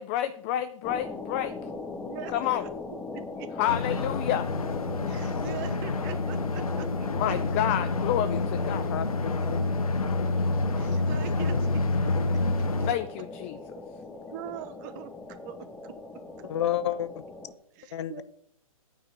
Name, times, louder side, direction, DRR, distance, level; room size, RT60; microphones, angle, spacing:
voice 1, 0.0-1.5 2.3-2.6 3.6-4.4 7.1-8.9 12.9-13.5, left 12 dB, 20° left, 11 dB, 0.3 m, -29 dB
sound 1, 0.8-17.5, left 3 dB, 5° left, 0.7 m, -40 dB
voice 2, 1.8-2.7 3.1-3.5 5.1-7.4 10.8-12.1 12.8-12.9 13.8-16.0 16.4-16.5 17.7-18.2, right 10 dB, 30° right, 12 dB, 0.9 m, -43 dB
sound 2, 3.7-12.9, left 3 dB, 75° left, 1.0 m, -28 dB
voice 3, 8.9-9.6 16.4-17.2 17.9-18.2, left 10 dB, 50° left, 15 dB, 0.7 m, -31 dB
9.4 x 5.4 x 8.1 m, 0.67 s
figure-of-eight pair, 130°, 19 cm